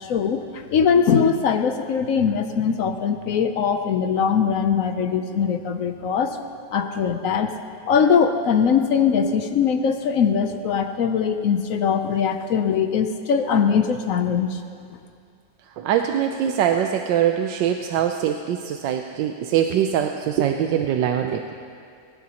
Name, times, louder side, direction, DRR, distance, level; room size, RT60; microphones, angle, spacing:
voice 1, 0.1-0.4 0.7-6.3 6.7-7.5 7.9-14.5, left 6 dB, 65° left, 7 dB, 0.9 m, -21 dB
voice 2, 15.8-21.5, right 9 dB, 85° right, 5 dB, 1.3 m, -23 dB
19.5 x 18.0 x 2.9 m, 2.4 s
omnidirectional pair, 1.9 m